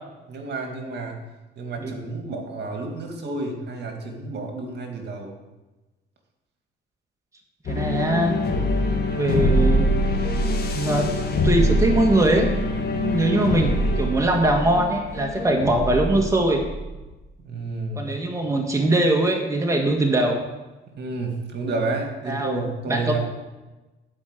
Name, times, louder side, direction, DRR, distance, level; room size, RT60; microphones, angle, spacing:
voice 1, 0.3-1.2 1.6-5.3 17.4-18.1 20.9-23.2, right 3 dB, 55° right, 3 dB, 2.3 m, -30 dB
sound 1, 7.7-17.1, left 1 dB, 55° left, 2.1 m, -24 dB
voice 2, 7.7-8.4 9.2-9.9 10.8-11.1 11.4-12.5 12.9-16.6 18.0-20.4 22.3-22.6 22.9-23.2, right 1 dB, 15° right, 1 dB, 1.9 m, -22 dB
11.5 x 5.5 x 8.3 m, 1.1 s
cardioid pair, 90°, 20 cm